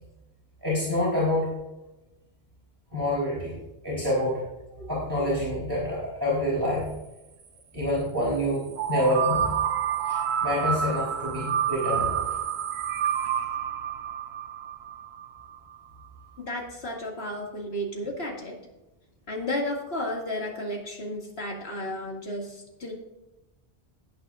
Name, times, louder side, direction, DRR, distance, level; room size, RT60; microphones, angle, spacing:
voice 1, 0.6-1.5 2.9-3.6 3.8-4.4 4.9-6.9 7.7-9.5 10.1-12.2, left 1 dB, 20° right, -8 dB, 3.7 m, -27 dB
sound 1, 8.8-15.6, right 9 dB, 85° right, 1.0 m, -28 dB
voice 2, 16.4-18.6 19.3-22.9, left 1 dB, 75° left, -1 dB, 2.5 m, -33 dB
18.0 x 8.5 x 2.5 m, 0.99 s
omnidirectional pair, 1.1 m